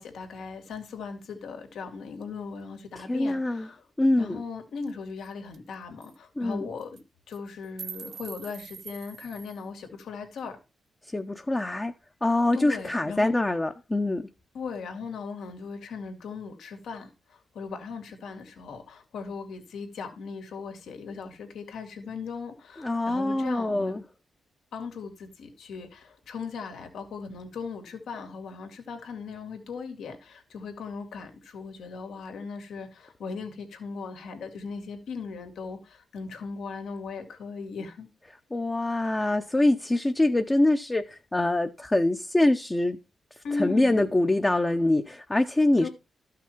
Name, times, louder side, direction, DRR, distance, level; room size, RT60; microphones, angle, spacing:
voice 1, 0.0-3.8 4.2-7.0 7.3-10.6 12.5-13.3 14.5-24.0 24.7-38.1 43.4-44.0 45.8-45.9, left 5 dB, 85° left, 2.6 m, -38 dB
voice 2, 3.0-3.7 4.0-4.4 6.4-6.6 11.1-11.9 12.2-14.3 22.8-24.0 38.5-43.0 43.6-45.9, left 2 dB, 15° left, 0.7 m, -24 dB
sound 1, 4.9-5.0 5.2-5.3 5.5-5.7 6.0-6.1 6.8-7.0 7.3-9.6, right 7 dB, 65° right, 1.0 m, -43 dB
13.5 x 6.0 x 4.5 m
cardioid pair, 120°, 0 cm